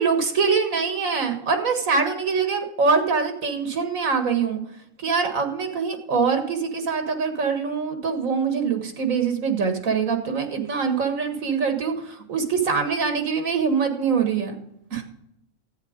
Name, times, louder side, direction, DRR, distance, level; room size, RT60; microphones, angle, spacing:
voice 1, 0.0-4.6 5.0-14.6 14.9-15.0, right 5 dB, 80° right, 6 dB, 2.0 m, -24 dB
12.5 x 8.9 x 5.1 m, 0.77 s
omnidirectional pair, 1.4 m